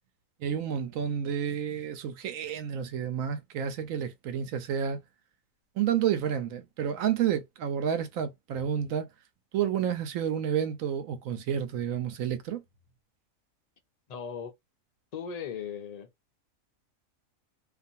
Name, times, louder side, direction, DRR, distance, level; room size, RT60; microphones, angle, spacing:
voice 1, 0.4-5.0 5.8-9.1 9.5-12.6, right 8 dB, 75° right, 1.1 m, -30 dB
voice 2, 14.1-14.5 15.1-16.1, left 7 dB, 60° left, 0.4 m, -37 dB
2.5 x 2.4 x 2.6 m
omnidirectional pair, 1.4 m